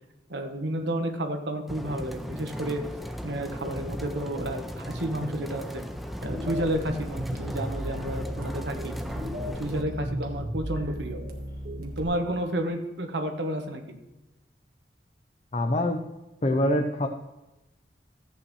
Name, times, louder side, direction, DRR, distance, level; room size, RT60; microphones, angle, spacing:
voice 1, 0.3-2.8 3.2-5.8 6.2-8.9 9.6-11.2 11.8-14.0, right 1 dB, 85° right, 5 dB, 1.2 m, -31 dB
sound 1, 1.7-9.8, equal, ahead, 0.6 m, -37 dB
sound 2, 6.2-12.0, equal, 55° right, 1.6 m, -35 dB
voice 2, 15.5-16.0 16.4-17.1, left 1 dB, 40° left, 4 dB, 0.7 m, -24 dB
14.0 x 8.7 x 3.2 m, 1.0 s
head